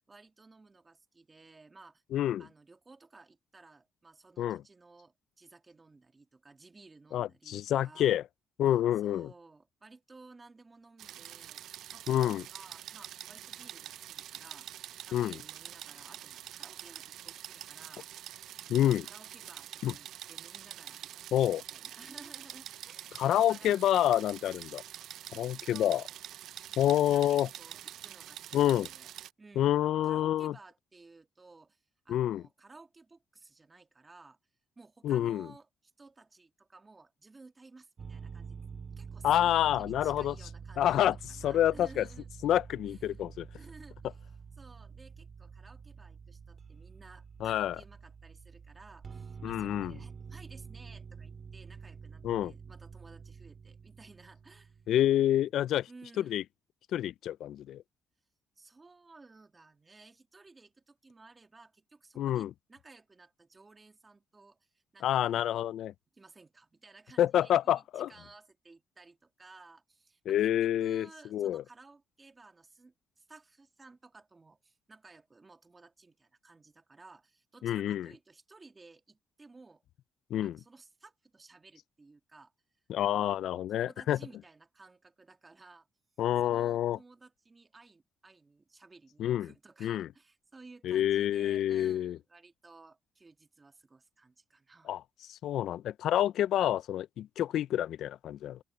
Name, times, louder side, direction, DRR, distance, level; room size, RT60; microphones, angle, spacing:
voice 1, 0.1-2.0 2.4-8.2 9.0-18.1 19.0-23.8 25.7-26.2 26.9-29.1 29.4-34.4 34.8-38.6 39.0-42.3 42.9-43.2 43.6-44.2 44.6-54.8 55.9-56.4 58.6-65.3 66.1-79.8 80.4-82.5 83.2-83.4 83.7-85.9 86.4-94.9, right 3 dB, 25° right, 2.5 m, -56 dB
voice 2, 2.1-2.4 4.4-4.6 7.1-8.2 8.6-9.3 12.1-12.4 15.1-15.4 18.7-19.1 19.8-19.9 21.3-21.6 23.2-24.8 25.3-26.0 26.8-27.5 28.5-28.9 29.6-30.6 32.1-32.4 35.0-35.5 39.2-40.3 40.8-41.2 41.4-42.1 42.4-43.5 47.4-47.8 49.4-49.9 52.2-52.5 54.9-55.9 56.3-56.4 56.9-57.8 62.2-62.5 65.0-65.9 67.2-68.1 70.3-71.6 77.6-78.1 80.3-80.6 82.9-84.2 86.2-87.0 89.2-89.5 89.8-90.1 90.8-92.2 94.9-95.0 95.3-98.6, left 12 dB, 75° left, 0.3 m, -28 dB
sound 1, 11.0-29.3, right 12 dB, 80° right, 0.4 m, -46 dB
sound 2, 38.0-55.3, right 6 dB, 45° right, 4.5 m, -47 dB
open air
cardioid pair, 90°, 0 cm